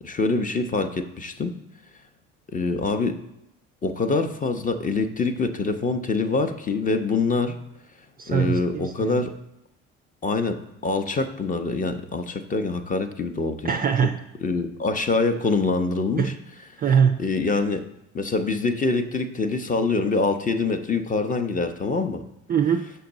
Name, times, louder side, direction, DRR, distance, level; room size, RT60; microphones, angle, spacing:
voice 1, 0.0-1.5 2.5-3.2 3.8-7.6 8.3-9.4 10.2-13.8 14.4-16.3 17.2-17.8 18.1-22.2, left 3 dB, 20° left, 9 dB, 0.6 m, -25 dB
voice 2, 8.2-9.2 13.6-14.2 16.2-16.3 16.8-17.2 22.5-22.8, right 7 dB, 25° right, 5 dB, 0.4 m, -22 dB
6.7 x 5.5 x 3.9 m, 0.85 s
figure-of-eight pair, 55°, 38 cm